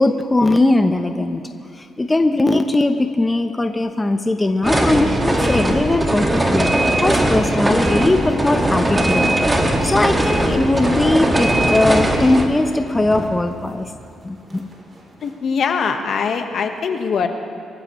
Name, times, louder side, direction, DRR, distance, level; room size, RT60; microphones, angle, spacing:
voice 1, 0.0-9.4 9.8-13.9 14.2-14.7, left 2 dB, 15° left, 6 dB, 0.8 m, -19 dB
sound 1, 4.6-12.4, right 1 dB, 20° right, 1.8 m, -19 dB
sound 2, 6.2-7.1 7.8-15.6, right 1 dB, 35° right, 3.4 m, -35 dB
voice 2, 15.2-17.3, left 6 dB, 60° left, 5 dB, 1.3 m, -22 dB
24.0 x 14.5 x 3.1 m, 2.5 s
cardioid pair, 90°, 0 cm